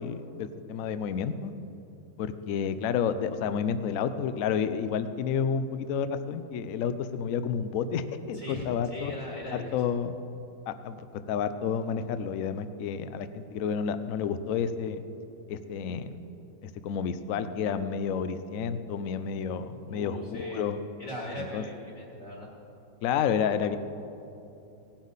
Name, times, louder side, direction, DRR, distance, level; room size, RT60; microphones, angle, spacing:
voice 1, 0.0-1.5 2.2-9.1 9.5-10.1 10.7-15.0 15.5-16.2 16.6-20.8 21.4-21.6 23.0-23.8, left 7 dB, 65° left, 11 dB, 0.8 m, -30 dB
voice 2, 8.3-9.8 19.9-20.6 21.0-22.5 23.4-23.8, left 1 dB, 45° left, -2 dB, 2.1 m, -39 dB
18.0 x 10.5 x 4.1 m, 2.7 s
omnidirectional pair, 2.0 m